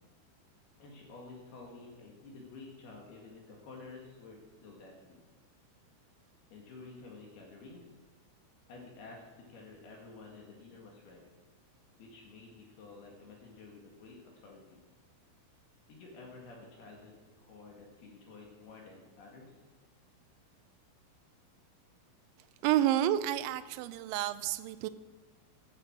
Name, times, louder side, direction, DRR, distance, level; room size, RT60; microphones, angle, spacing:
voice 1, 0.8-5.2 6.5-7.9 8.7-11.2 12.0-14.8 15.9-19.5, left 3 dB, 60° left, -1 dB, 3.4 m, -51 dB
voice 2, 22.6-24.9, right 12 dB, 90° right, 12 dB, 2.6 m, -29 dB
11.5 x 8.8 x 7.5 m, 1.3 s
omnidirectional pair, 5.8 m